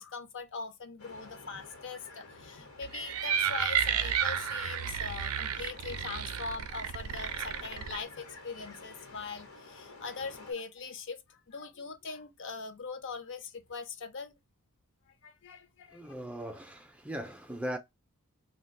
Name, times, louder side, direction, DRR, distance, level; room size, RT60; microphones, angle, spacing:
voice 1, 0.0-14.3 15.2-16.1, left 4 dB, 60° left, 0.5 m, -42 dB
sound 1, 1.0-10.5, left 3 dB, 80° left, 1.1 m, -50 dB
sound 2, 2.8-8.0, right 8 dB, 80° right, 0.4 m, -32 dB
voice 2, 15.9-17.8, equal, 5° right, 0.3 m, -39 dB
2.4 x 2.2 x 3.8 m
head